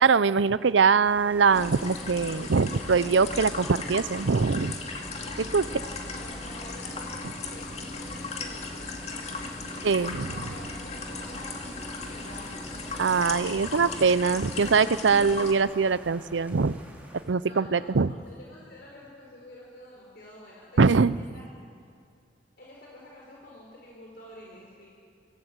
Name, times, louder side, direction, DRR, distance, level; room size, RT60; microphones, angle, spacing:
voice 1, 0.0-4.8 5.5-5.6 9.8-10.3 13.0-16.8 17.3-18.1 20.8-21.2, right 5 dB, 90° right, 17 dB, 0.6 m, -22 dB
sound 1, 1.0-17.2, right 1 dB, 10° right, 3.5 m, -49 dB
sound 2, 1.5-15.5, left 3 dB, 40° left, 2.3 m, -36 dB
voice 2, 5.7-9.5 9.9-11.8 12.1-12.7 17.4-21.5 22.6-24.9, left 1 dB, 60° left, -4 dB, 4.5 m, -48 dB
25.5 x 17.5 x 8.1 m, 2.3 s
head